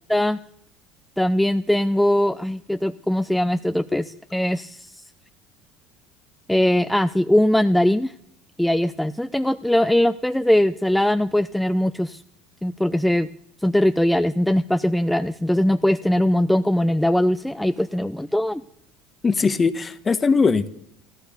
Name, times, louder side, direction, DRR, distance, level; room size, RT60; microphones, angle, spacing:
voice 1, 0.1-0.4 1.2-4.0 4.3-4.9 6.5-8.1 8.6-12.2 12.6-13.3 13.6-18.6, left 1 dB, 5° left, 11 dB, 0.6 m, -20 dB
voice 2, 19.2-20.7, left 4 dB, 25° left, 13 dB, 1.2 m, -20 dB
15.0 x 14.0 x 6.8 m, 0.71 s
hypercardioid pair, 70°, 0 cm